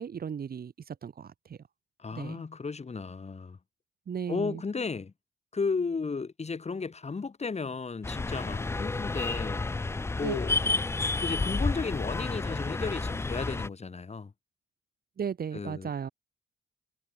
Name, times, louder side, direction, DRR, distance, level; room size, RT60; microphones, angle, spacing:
voice 1, 0.0-1.6 2.1-2.4 4.1-4.6 10.2-10.4 10.6-10.7 15.2-16.1, right 7 dB, 55° right, 4.9 m, -36 dB
voice 2, 2.0-3.6 4.3-5.1 5.5-9.8 10.1-10.6 11.2-14.3 15.5-16.1, left 4 dB, 35° left, 7.4 m, -34 dB
sound 1, 8.0-13.7, left 3 dB, 15° left, 0.4 m, -30 dB
cardioid pair, 70°, 18 cm